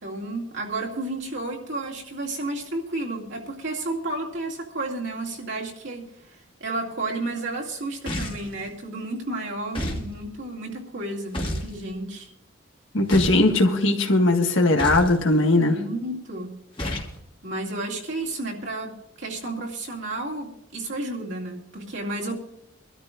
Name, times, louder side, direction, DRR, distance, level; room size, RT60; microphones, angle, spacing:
voice 1, 0.0-12.3 15.7-16.6 17.4-22.3, right 2 dB, 60° right, -1 dB, 2.3 m, -32 dB
sound 1, 8.1-8.5 9.7-10.1 11.3-11.7 13.1-13.5 14.8-15.2 16.8-17.2, equal, 25° left, 1.8 m, -29 dB
voice 2, 12.9-15.8, left 2 dB, 70° left, 3 dB, 1.6 m, -19 dB
24.0 x 13.0 x 2.5 m, 0.80 s
head